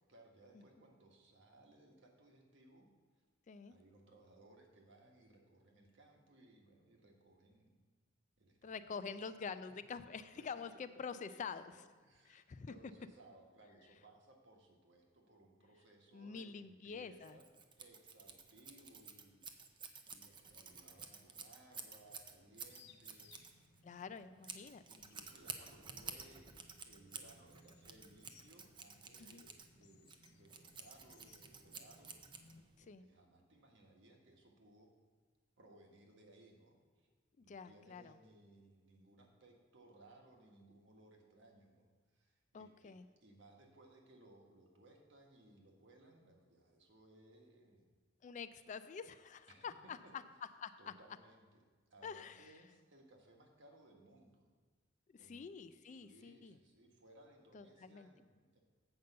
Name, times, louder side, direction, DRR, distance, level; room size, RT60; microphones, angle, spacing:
voice 1, 0.1-2.9 3.7-7.8 8.4-9.1 10.3-10.5 11.3-11.4 12.0-17.5 17.8-19.7 20.1-23.7 24.9-32.2 32.8-34.9 35.6-36.8 37.4-41.9 42.2-42.9 43.2-47.9 49.4-50.1 50.8-51.6 51.9-54.5 55.1-55.6 55.8-58.6, right 1 dB, 65° right, 1 dB, 1.4 m, -63 dB
voice 2, 8.6-11.6 12.3-12.7 16.1-17.4 23.8-24.8 29.2-29.4 32.9-33.0 37.4-38.2 42.5-43.1 48.2-50.2 50.6-50.7 52.0-52.5 55.2-56.6 57.5-58.1, left 5 dB, 40° left, 12 dB, 0.3 m, -47 dB
Scissors, 17.2-32.8, right 5 dB, 25° right, 0.6 m, -52 dB
sound 1, 21.8-32.6, left 3 dB, 60° left, 0.7 m, -66 dB
8.0 x 5.3 x 6.7 m, 1.4 s
head